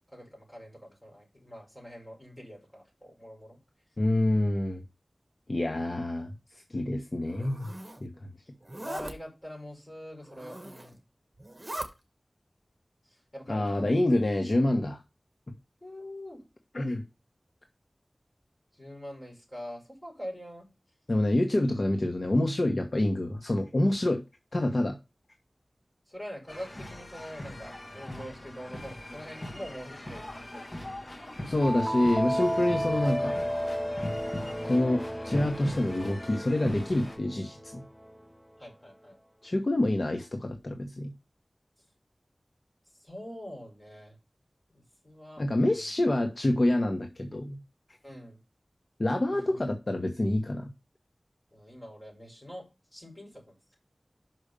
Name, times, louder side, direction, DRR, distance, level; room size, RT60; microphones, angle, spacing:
voice 1, 0.1-3.6 8.8-10.9 13.0-13.8 15.8-16.4 18.7-20.7 26.1-30.8 38.6-39.2 43.0-44.2 44.7-45.9 48.0-48.4 49.3-49.6 51.5-52.6 52.9-53.7, equal, 20° left, 5.2 m, -44 dB
voice 2, 4.0-4.8 5.5-7.7 8.0-8.3 13.5-15.0 16.7-17.0 21.1-24.2 24.5-25.0 31.4-33.4 34.6-37.8 39.4-41.1 45.4-47.6 49.0-50.7, left 1 dB, 55° left, 1.2 m, -27 dB
Zipper (clothing), 7.2-8.0 8.6-9.1 10.2-11.0 11.4-11.9, right 1 dB, 30° right, 1.5 m, -40 dB
sound 1, 26.5-37.2, left 1 dB, 35° left, 1.5 m, -41 dB
sound 2, 31.6-38.1, equal, ahead, 0.5 m, -33 dB
6.2 x 5.1 x 6.8 m
wide cardioid pair, 55°, 0 cm